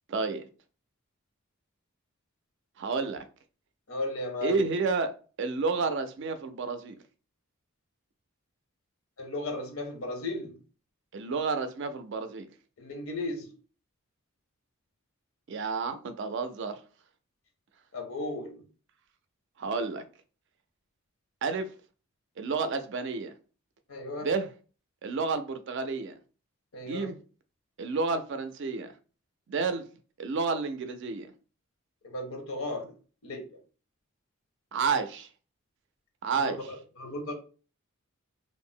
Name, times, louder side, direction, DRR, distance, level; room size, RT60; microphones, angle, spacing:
voice 1, 0.1-0.5 2.8-3.2 4.4-7.0 11.1-12.5 15.5-16.8 19.6-20.0 21.4-21.7 22.4-23.3 24.2-24.5 25.0-26.1 26.9-27.2 27.8-28.9 29.5-29.9 30.2-31.3 34.7-35.3 36.2-36.7, right 4 dB, 55° right, 0.4 m, -30 dB
voice 2, 3.9-4.7 9.2-10.5 12.8-13.5 17.9-18.6 23.9-24.3 26.7-27.1 32.0-32.9 33.2-33.4 36.3-36.4 37.0-37.3, left 2 dB, 75° left, 0.8 m, -35 dB
2.5 x 2.0 x 3.5 m
head